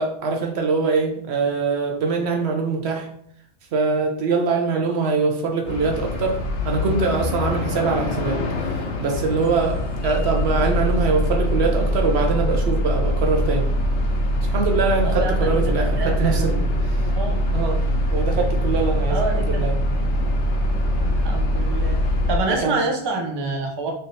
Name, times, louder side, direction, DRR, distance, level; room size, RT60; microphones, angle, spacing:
voice 1, 0.0-3.1 3.7-6.4 6.6-9.8 10.0-13.7 14.4-17.1 17.5-17.8 18.1-19.7 22.5-22.8, right 4 dB, 65° right, 2 dB, 0.9 m, -23 dB
sound 1, 5.7-22.4, equal, 75° left, 1.0 m, -23 dB
voice 2, 15.0-15.6 16.0-16.7 17.1-17.4 19.1-19.7 21.0-22.0 22.3-23.9, right 3 dB, 30° right, 0 dB, 0.5 m, -27 dB
3.3 x 2.7 x 3.9 m, 0.65 s
omnidirectional pair, 1.2 m